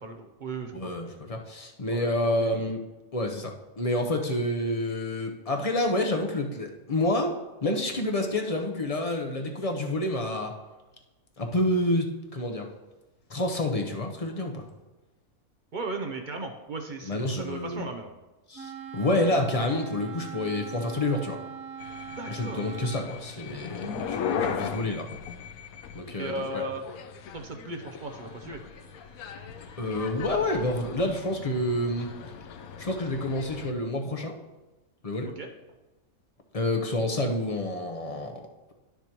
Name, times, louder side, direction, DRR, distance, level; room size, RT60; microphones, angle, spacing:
voice 1, 0.0-1.1 1.9-2.5 15.7-18.1 22.1-22.7 26.2-26.9 27.3-28.6 35.4-35.5, right 2 dB, 45° right, 4 dB, 0.6 m, -36 dB
voice 2, 0.7-2.8 3.1-7.3 7.6-10.6 11.4-12.7 13.3-14.7 17.1-17.9 18.5-21.4 22.3-25.1 25.9-26.6 29.8-32.1 32.8-34.4 35.0-35.3 36.5-38.7, left 1 dB, 35° left, 3 dB, 0.7 m, -28 dB
Wind instrument woodwind instrument, 18.5-23.1, right 7 dB, 65° right, 1.2 m, -41 dB
sound 1, 21.8-33.7, left 7 dB, 75° left, 1.1 m, -38 dB
11.5 x 6.9 x 3.0 m, 1.1 s
omnidirectional pair, 1.6 m